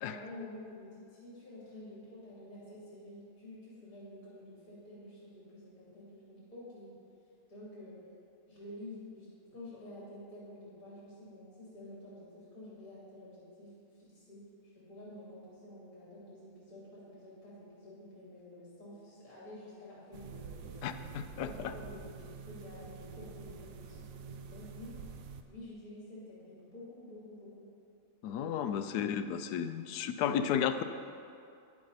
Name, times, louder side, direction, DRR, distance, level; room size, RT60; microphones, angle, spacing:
voice 1, 0.0-6.9 7.5-8.0 8.5-21.1 21.4-25.0 25.5-27.7 28.6-28.8, left 1 dB, 60° left, -8 dB, 3.4 m, -50 dB
sound 1, 20.1-25.4, right 6 dB, 85° right, 1.2 m, -47 dB
voice 2, 20.8-21.7 28.2-30.8, left 8 dB, 85° left, 10 dB, 1.2 m, -33 dB
11.0 x 10.5 x 4.1 m, 2.5 s
omnidirectional pair, 1.7 m